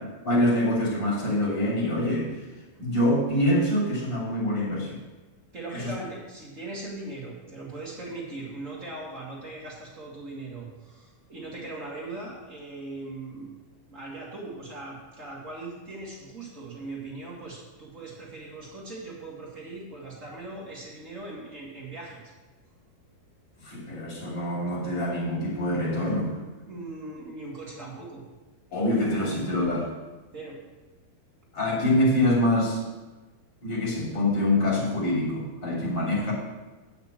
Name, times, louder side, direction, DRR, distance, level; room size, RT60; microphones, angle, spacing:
voice 1, 0.2-2.4 2.8-5.0 5.7-5.9 23.6-26.4 28.7-29.9 31.5-32.8 33.6-36.3, left 1 dB, 30° left, -4 dB, 3.1 m, -25 dB
voice 2, 5.5-13.5 13.9-22.2 26.6-28.2 30.3-30.6, right 2 dB, 35° right, -5 dB, 1.3 m, -39 dB
9.1 x 5.9 x 7.3 m, 1.2 s
omnidirectional pair, 4.5 m